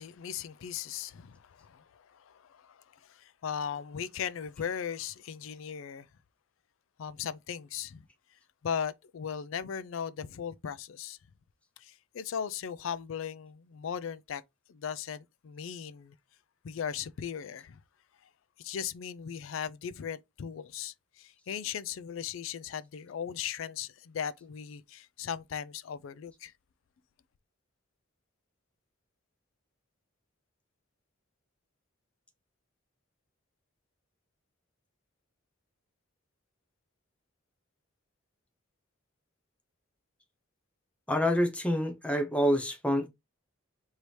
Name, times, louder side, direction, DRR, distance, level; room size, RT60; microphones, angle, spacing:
voice 1, 0.0-2.8 3.1-6.1 7.0-8.0 8.6-11.2 11.8-14.4 14.7-16.2 16.6-17.8 18.6-26.5, left 8 dB, 70° left, 0.4 m, -38 dB
voice 2, 41.1-43.1, equal, 5° left, 0.6 m, -27 dB
4.6 x 2.7 x 3.2 m
head